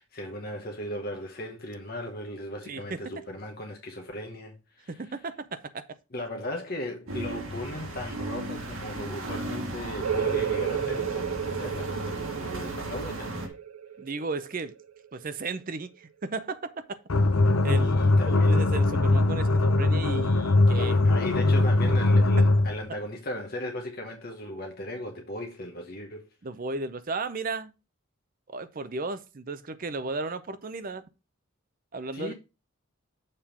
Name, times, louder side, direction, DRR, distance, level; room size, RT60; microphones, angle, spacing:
voice 1, 0.0-5.2 6.1-13.5 17.7-18.7 20.7-26.3 32.1-32.3, left 1 dB, 45° left, 0.9 m, -37 dB
voice 2, 2.7-3.0 4.9-5.8 14.0-14.7 15.1-17.0 17.6-17.9 18.3-21.0 21.8-22.0 26.4-27.7 28.5-31.0 31.9-32.3, right 3 dB, 40° right, 0.5 m, -34 dB
sound 1, 7.1-13.5, right 1 dB, 70° right, 1.6 m, -35 dB
sound 2, 10.0-15.4, right 8 dB, 90° right, 0.4 m, -32 dB
sound 3, 17.1-22.8, left 2 dB, 75° left, 0.7 m, -21 dB
6.7 x 3.6 x 5.8 m
head